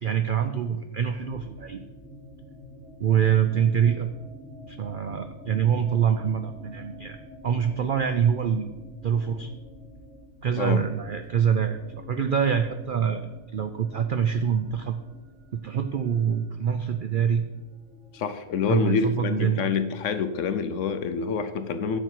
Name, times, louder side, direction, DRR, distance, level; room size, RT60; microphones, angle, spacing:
voice 1, 0.0-1.8 3.0-4.1 4.7-7.2 7.4-8.7 9.0-9.5 10.4-13.3 13.5-15.0 15.5-17.5 18.7-19.6, right 8 dB, 70° right, 8 dB, 0.4 m, -25 dB
musicalwinds new, 1.1-20.9, equal, 35° right, 3.0 m, -48 dB
voice 2, 18.1-22.0, left 6 dB, 65° left, 10 dB, 0.9 m, -27 dB
10.0 x 6.9 x 4.5 m, 1.1 s
omnidirectional pair, 1.6 m